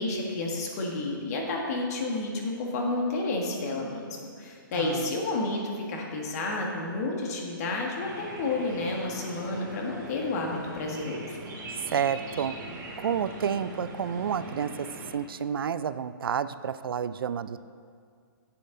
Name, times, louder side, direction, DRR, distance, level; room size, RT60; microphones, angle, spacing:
voice 1, 0.0-4.1 4.4-11.4, left 2 dB, 45° left, 0 dB, 1.8 m, -30 dB
voice 2, 4.8-5.1 11.9-12.5 13.0-14.9 15.1-17.6, right 8 dB, 85° right, 14 dB, 0.4 m, -30 dB
sound 1, 8.0-15.1, right 1 dB, 55° right, 2.7 m, -41 dB
10.5 x 7.6 x 3.9 m, 2.1 s
hypercardioid pair, 150°, 12 cm